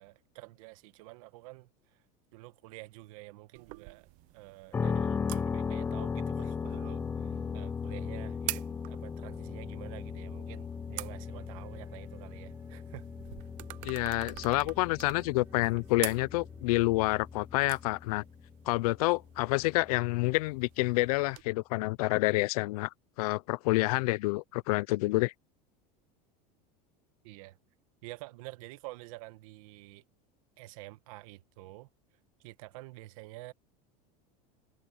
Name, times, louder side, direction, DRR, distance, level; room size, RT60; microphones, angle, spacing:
voice 1, 0.0-2.0 2.3-4.1 4.3-13.1 27.2-27.6 28.0-30.0 30.6-31.9 32.4-33.5, right 20 dB, 65° right, 1.3 m, -48 dB
sound 1, 3.5-21.4, right 22 dB, 45° right, 0.6 m, -47 dB
sound 2, 4.7-20.6, left 6 dB, 10° left, 0.5 m, -37 dB
sound 3, 6.5-17.3, right 7 dB, 15° right, 1.4 m, -61 dB
voice 2, 13.8-18.2 18.7-22.9 23.2-25.3, left 21 dB, 80° left, 0.5 m, -28 dB
cardioid pair, 175°, 19 cm